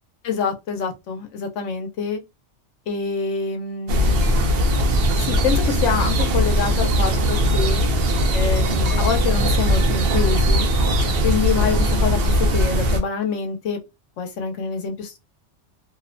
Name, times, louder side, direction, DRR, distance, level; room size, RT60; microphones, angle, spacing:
voice 1, 0.2-2.2 2.9-4.4 5.1-7.8 8.3-10.7 11.2-13.8 14.2-15.2, left 6 dB, 90° left, 0.9 m, -26 dB
sound 1, 3.9-13.0, equal, 60° right, 0.7 m, -19 dB
2.7 x 2.0 x 2.5 m
omnidirectional pair, 1.2 m